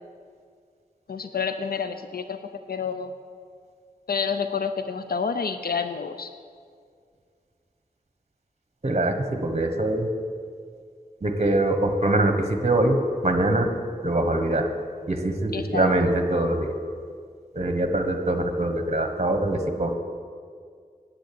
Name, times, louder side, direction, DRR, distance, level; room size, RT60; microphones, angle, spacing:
voice 1, 1.1-2.4 2.7-3.1 4.1-6.3 15.5-15.9, left 6 dB, 80° left, 9 dB, 0.5 m, -28 dB
voice 2, 8.8-10.1 11.2-13.0 13.2-13.7 14.0-14.7 15.1-16.7 17.5-20.0, right 1 dB, 45° right, 6 dB, 1.4 m, -23 dB
10.0 x 7.6 x 8.7 m, 2.1 s
wide cardioid pair, 50°, 16 cm